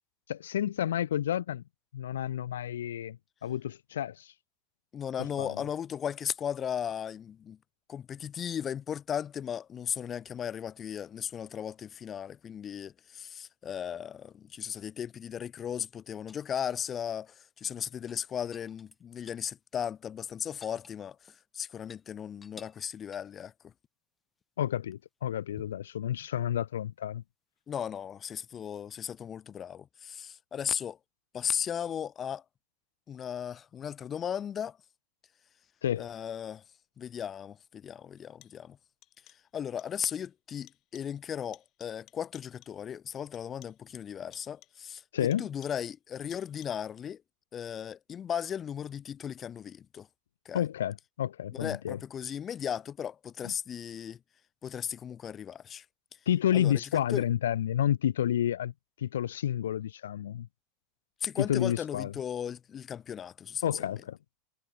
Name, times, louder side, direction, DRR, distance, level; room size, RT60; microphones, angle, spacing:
voice 1, 0.3-1.6 1.9-4.3 5.4-5.5 24.6-27.2 35.8-36.1 45.1-45.5 50.5-52.0 53.4-53.5 56.3-58.7 59.0-60.5 61.4-62.1 63.6-64.2, left 10 dB, 85° left, 0.4 m, -30 dB
voice 2, 4.9-7.6 7.9-23.7 27.7-31.0 31.3-32.4 33.1-34.8 36.0-36.6 37.0-38.8 39.3-47.2 47.5-50.1 50.4-50.6 51.6-54.2 54.6-55.9 56.5-57.2 61.2-63.7, left 8 dB, 30° left, 0.6 m, -36 dB
sound 1, 16.3-17.1 18.0-19.5 19.8-19.9 20.2-21.4 21.8-22.0 22.4-22.9 23.1-23.4 25.6-25.9 27.6-27.7, left 4 dB, 15° left, 5.8 m, -55 dB
sound 2, 37.1-37.2 38.2-38.7 39.0-39.5 39.8-40.3 40.7-41.2 41.5-42.9 43.3-43.9 44.3-44.9 45.3-46.0 46.3-46.9, left 16 dB, 45° left, 1.8 m, -59 dB
hypercardioid pair, 105°, 0 cm